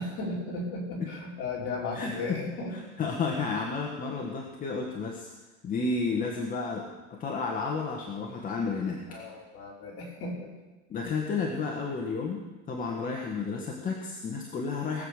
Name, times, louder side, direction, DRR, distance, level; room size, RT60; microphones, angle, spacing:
voice 1, 0.0-2.8 9.1-10.5, left 2 dB, 40° left, -3 dB, 4.6 m, -35 dB
voice 2, 1.9-2.4 3.0-5.3 5.6-9.0 10.9-12.4 12.7-15.0, left 4 dB, 25° left, 0 dB, 1.5 m, -31 dB
20.0 x 7.9 x 6.6 m, 1.2 s
cardioid pair, 155°, 33 cm